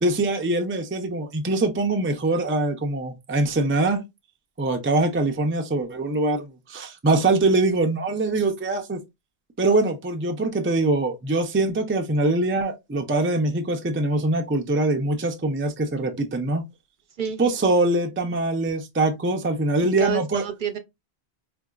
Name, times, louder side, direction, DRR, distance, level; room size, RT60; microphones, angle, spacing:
voice 1, 0.0-4.0 4.6-9.0 9.6-16.6 17.4-20.4, right 2 dB, 20° right, 0.3 m, -23 dB
voice 2, 19.8-20.8, right 8 dB, 55° right, 0.7 m, -28 dB
4.8 x 2.5 x 2.3 m
omnidirectional pair, 1.1 m